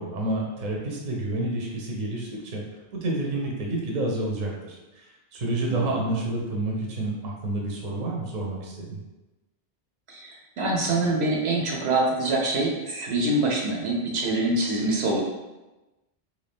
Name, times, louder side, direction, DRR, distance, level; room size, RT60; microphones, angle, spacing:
voice 1, 0.0-2.6 2.9-9.0, right 2 dB, 45° right, -2 dB, 0.7 m, -29 dB
voice 2, 5.7-6.0 10.1-15.2, right 2 dB, 70° right, -1 dB, 0.9 m, -25 dB
3.1 x 2.7 x 3.4 m, 1.1 s
omnidirectional pair, 1.1 m